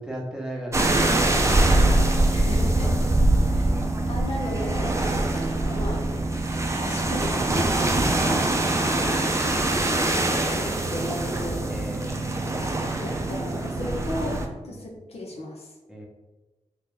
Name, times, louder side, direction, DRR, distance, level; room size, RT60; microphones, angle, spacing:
voice 1, 0.0-2.1 11.7-12.2 13.8-14.8 15.9-16.0, right 1 dB, 5° right, -2 dB, 1.0 m, -38 dB
sound 1, 0.7-14.5, right 2 dB, 25° right, 0.5 m, -23 dB
voice 2, 2.3-3.1 3.4-3.7 4.1-5.0 5.3-6.1 6.8-9.3 9.7-11.6 13.0-14.4 14.6-15.7, left 1 dB, 60° left, -1 dB, 0.8 m, -35 dB
3.0 x 2.8 x 3.7 m, 1.1 s
cardioid pair, 45°, 12 cm